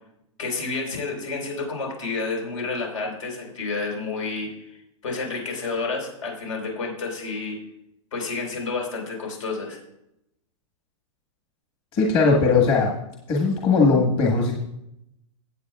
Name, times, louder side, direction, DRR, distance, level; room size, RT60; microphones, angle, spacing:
voice 1, 0.4-4.8 5.0-7.6 8.1-9.8, left 3 dB, 80° left, 1 dB, 4.3 m, -30 dB
voice 2, 11.9-13.0 13.3-14.6, left 4 dB, 30° left, -1 dB, 1.6 m, -19 dB
17.0 x 8.3 x 2.4 m, 0.80 s
hypercardioid pair, 150°, 16 cm